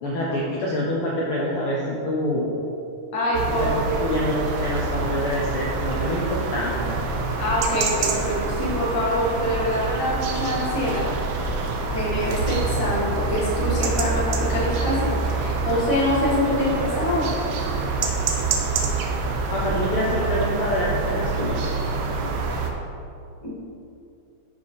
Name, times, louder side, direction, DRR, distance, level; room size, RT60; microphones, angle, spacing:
voice 1, 0.0-2.5 3.6-3.7 4.0-7.0 19.5-21.7, left 1 dB, 85° left, -4 dB, 1.2 m, -26 dB
voice 2, 3.1-4.1 7.4-11.1 11.9-17.3 23.4-23.5, left 1 dB, 25° left, -6 dB, 0.7 m, -25 dB
sound 1, 3.3-22.7, right 3 dB, 75° right, 1.7 m, -26 dB
6.8 x 4.7 x 5.5 m, 2.6 s
omnidirectional pair, 3.6 m